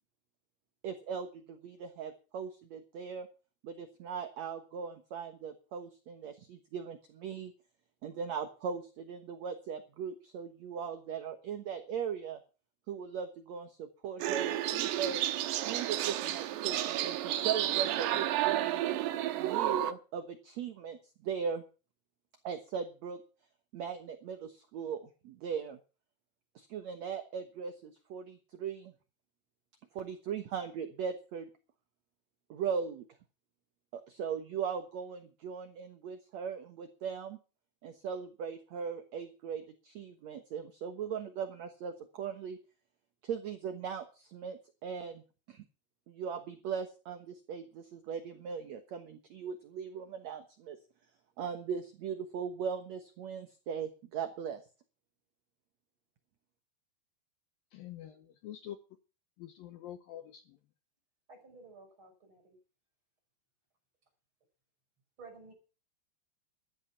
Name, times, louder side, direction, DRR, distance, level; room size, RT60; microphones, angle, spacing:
voice 1, 0.8-3.3 3.6-7.5 8.0-12.4 12.9-15.2 15.6-18.8 19.4-21.6 22.4-23.2 23.7-25.8 26.5-28.9 29.9-31.5 32.5-33.0 33.9-37.4 37.8-42.6 43.2-45.2 45.5-45.6 46.1-50.8 51.4-54.6, right 7 dB, 65° right, 1.8 m, -39 dB
sound 1, 14.2-19.9, right 13 dB, 85° right, 3.2 m, -31 dB
voice 2, 57.7-58.8 59.4-60.6, left 11 dB, 70° left, 2.4 m, -46 dB
voice 3, 61.3-62.6 65.2-65.5, right 3 dB, 30° right, 6.5 m, -53 dB
13.5 x 11.5 x 5.8 m
omnidirectional pair, 4.9 m